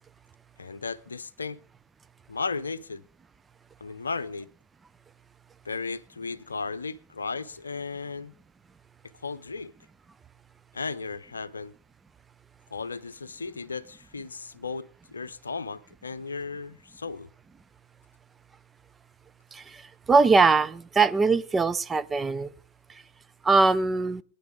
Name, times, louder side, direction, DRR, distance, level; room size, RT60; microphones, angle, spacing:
voice 1, 0.6-1.6 2.3-3.0 3.8-4.5 5.6-8.3 9.2-9.7 10.7-11.7 12.7-17.3, left 4 dB, 75° left, 0.6 m, -35 dB
voice 2, 19.5-22.5 22.9-23.0 23.4-24.2, right 4 dB, 15° right, 0.6 m, -22 dB
22.0 x 9.9 x 3.7 m
figure-of-eight pair, 90°, 0 cm